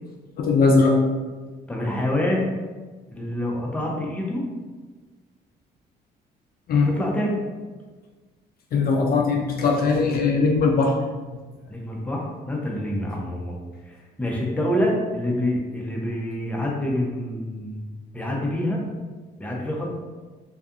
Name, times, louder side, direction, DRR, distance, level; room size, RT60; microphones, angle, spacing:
voice 1, 0.4-1.0 6.7-6.9 8.7-10.9, left 4 dB, 55° left, 1 dB, 0.4 m, -19 dB
voice 2, 1.7-2.5 3.1-4.4 6.8-7.4 11.7-13.6 13.9-18.8 19.4-19.9, left 1 dB, 5° left, -2 dB, 0.6 m, -26 dB
2.7 x 2.3 x 2.4 m, 1.3 s
cardioid pair, 85°, 18 cm